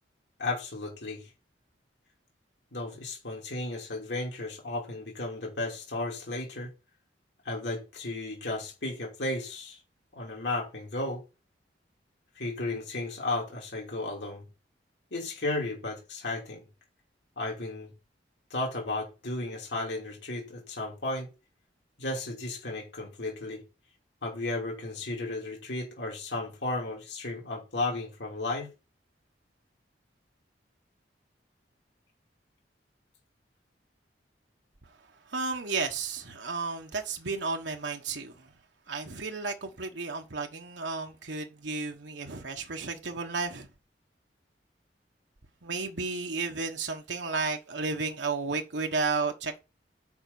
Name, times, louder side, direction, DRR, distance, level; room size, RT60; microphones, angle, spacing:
voice 1, 0.4-1.3 2.7-6.7 7.4-9.8 10.1-11.2 12.3-14.5 15.1-16.6 17.4-17.9 18.5-21.3 22.0-23.6 24.2-28.7, left 2 dB, 75° left, 2.8 m, -34 dB
voice 2, 35.3-38.5 38.9-43.7 45.6-49.6, right 4 dB, 85° right, 1.3 m, -33 dB
6.9 x 5.1 x 7.0 m
head